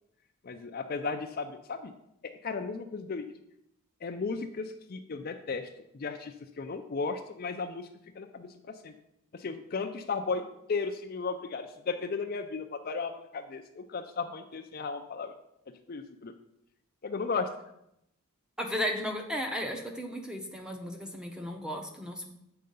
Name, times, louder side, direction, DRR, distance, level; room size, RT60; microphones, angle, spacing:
voice 1, 0.4-1.9 2.2-3.2 4.0-5.7 5.9-7.9 8.2-8.9 9.3-15.3 15.9-16.3 17.0-17.5, left 4 dB, 40° left, 7 dB, 0.4 m, -35 dB
voice 2, 18.6-22.3, equal, 5° right, 2 dB, 0.7 m, -35 dB
7.7 x 4.7 x 5.4 m, 0.79 s
head